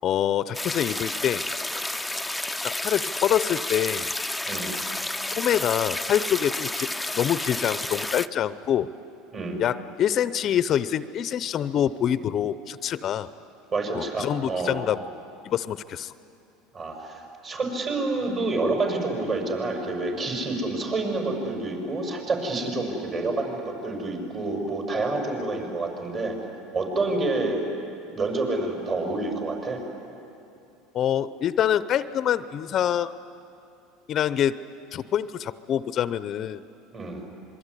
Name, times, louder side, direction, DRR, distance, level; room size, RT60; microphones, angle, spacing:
voice 1, 0.0-1.4 2.6-4.1 5.4-8.9 9.6-13.3 13.9-15.0 15.4-16.1 30.9-33.2 34.1-34.6 34.9-36.6, left 10 dB, 40° left, 15 dB, 0.7 m, -25 dB
sound 1, 0.5-8.3, left 2 dB, 5° left, 0.6 m, -31 dB
voice 2, 13.7-14.8 16.7-26.4 26.7-27.6 28.1-29.8 36.9-37.2, right 2 dB, 40° right, 2 dB, 6.5 m, -28 dB
26.0 x 22.5 x 10.0 m, 2.7 s
supercardioid pair, 110°, 0 cm